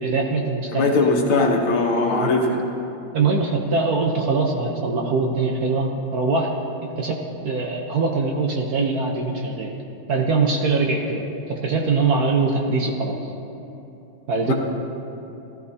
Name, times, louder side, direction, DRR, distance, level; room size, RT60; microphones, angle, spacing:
voice 1, 0.0-1.1 2.1-2.3 3.1-6.5 7.0-9.7 10.1-13.3 14.3-14.5, right 4 dB, 55° right, 1 dB, 1.2 m, -22 dB
voice 2, 0.7-2.6 14.4-14.5, left 3 dB, 80° left, 1 dB, 2.0 m, -20 dB
17.5 x 13.5 x 2.8 m, 2.9 s
omnidirectional pair, 2.3 m